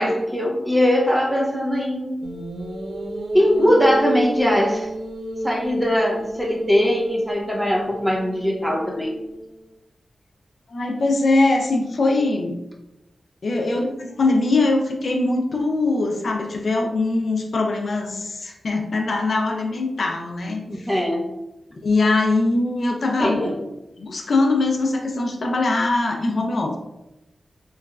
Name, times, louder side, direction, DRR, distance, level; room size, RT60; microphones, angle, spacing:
voice 1, 0.0-2.2 3.3-4.9 5.4-9.1 20.7-21.2 23.2-23.6, equal, 5° right, -1 dB, 0.6 m, -21 dB
sound 1, 2.2-9.6, right 1 dB, 90° right, 0.4 m, -31 dB
voice 2, 10.7-12.5 13.4-20.9 21.7-23.5 24.0-26.8, left 2 dB, 65° left, 2 dB, 0.3 m, -22 dB
3.0 x 2.3 x 2.3 m, 0.92 s
wide cardioid pair, 90°, 0 cm